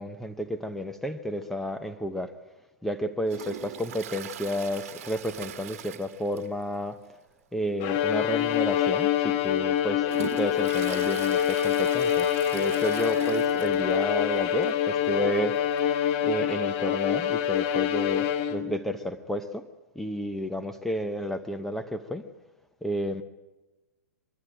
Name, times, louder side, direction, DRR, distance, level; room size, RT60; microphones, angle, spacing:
voice 1, 0.0-2.4 2.8-7.0 7.5-15.8 16.2-19.6 20.0-22.2 22.8-23.2, equal, 5° left, 7 dB, 0.8 m, -31 dB
Toilet flush, 3.3-6.7 7.0-7.1 7.5-7.6 8.5-8.6 9.1-14.0 14.4-14.5 14.6-14.7 15.8-15.9, right 10 dB, 60° right, 1.5 m, -41 dB
Bowed string instrument, 7.8-18.8, left 10 dB, 45° left, 1.4 m, -26 dB
22.5 x 14.0 x 9.0 m, 1.1 s
hypercardioid pair, 115°, 8 cm